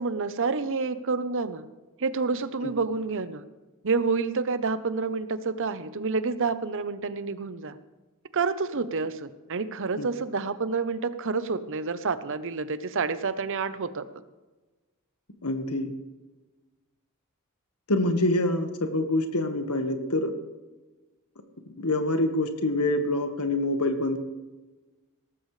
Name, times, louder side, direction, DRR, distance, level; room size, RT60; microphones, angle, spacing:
voice 1, 0.0-1.7 2.0-3.4 3.8-7.8 8.3-14.0, right 4 dB, 60° right, 13 dB, 0.8 m, -28 dB
voice 2, 15.4-15.9 17.9-20.3 21.8-24.2, left 1 dB, 80° left, 7 dB, 1.6 m, -26 dB
18.0 x 15.0 x 3.3 m, 1.2 s
head